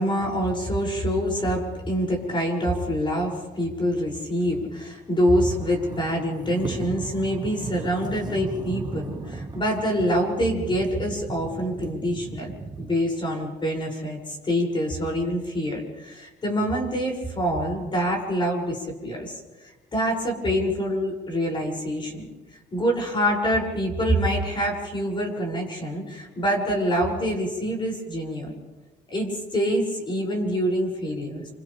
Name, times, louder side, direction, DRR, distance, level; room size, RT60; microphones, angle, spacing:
voice 1, 0.0-12.5 12.8-19.3 19.9-22.3 22.7-28.5 29.1-31.5, equal, 30° left, -1 dB, 7.1 m, -26 dB
sound 1, 5.2-13.0, right 3 dB, 25° right, 1.8 m, -36 dB
29.5 x 26.0 x 3.6 m, 1.2 s
cardioid pair, 110°, 17 cm